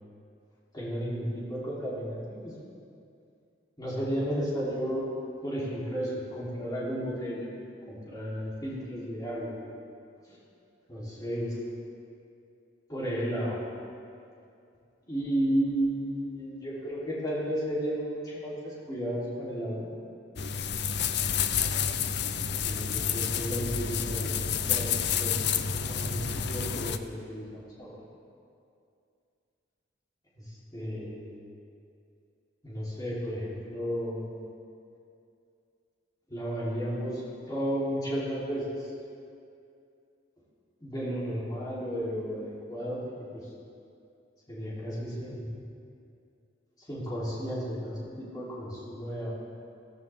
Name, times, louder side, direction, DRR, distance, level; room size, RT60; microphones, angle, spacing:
voice 1, 0.7-2.6 3.8-5.1 5.4-7.5 7.9-9.6 10.9-11.6 12.9-13.6 15.0-19.9 22.3-28.0 30.4-31.3 32.6-34.3 36.3-37.2 37.5-38.9 40.8-43.0 43.3-43.4 44.5-45.5 46.9-49.3, equal, 20° left, -8 dB, 3.3 m, -33 dB
sound 1, 20.4-27.0, left 7 dB, 60° left, 0.5 m, -29 dB
15.5 x 14.5 x 3.6 m, 2.5 s
head